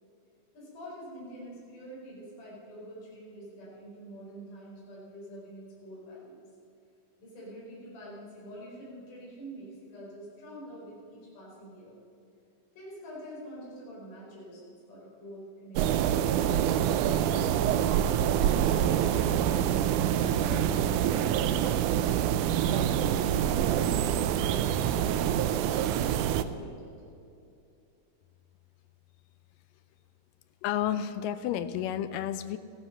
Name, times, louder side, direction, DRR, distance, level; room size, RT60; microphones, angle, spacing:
voice 1, 0.5-6.4 7.2-12.0 12.7-19.7 20.1-22.3 22.7-26.9, equal, 60° left, -6 dB, 6.5 m, -45 dB
sound 1, 15.8-26.4, right 10 dB, 85° right, 1.7 m, -26 dB
voice 2, 30.6-32.6, left 10 dB, 80° left, 12 dB, 2.0 m, -31 dB
15.0 x 15.0 x 5.8 m, 2.6 s
omnidirectional pair, 4.2 m